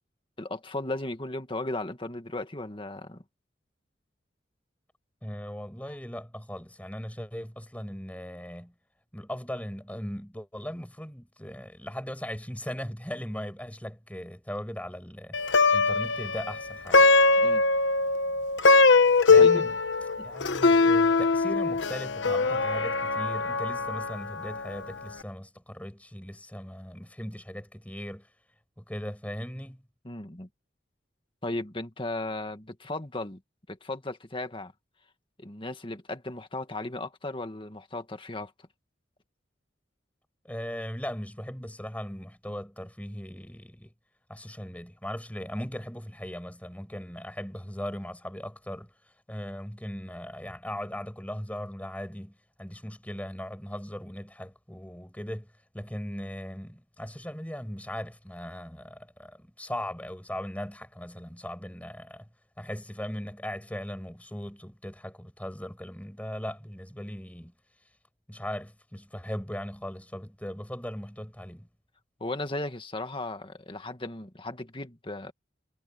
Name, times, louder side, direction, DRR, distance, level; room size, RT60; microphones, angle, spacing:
voice 1, 0.4-3.2 17.4-17.6 18.6-18.8 19.4-19.5 30.0-30.5 31.4-33.4 33.7-34.7 35.4-38.5 72.2-75.3, left 2 dB, 30° left, 1.9 m, -36 dB
voice 2, 5.2-8.7 9.1-17.1 19.3-19.8 20.2-28.3 28.8-29.8 40.4-43.9 44.3-62.3 62.6-67.5 68.3-71.7, equal, 10° left, 6.0 m, -38 dB
Plucked string instrument, 15.3-24.8, left 3 dB, 90° left, 1.1 m, -22 dB
head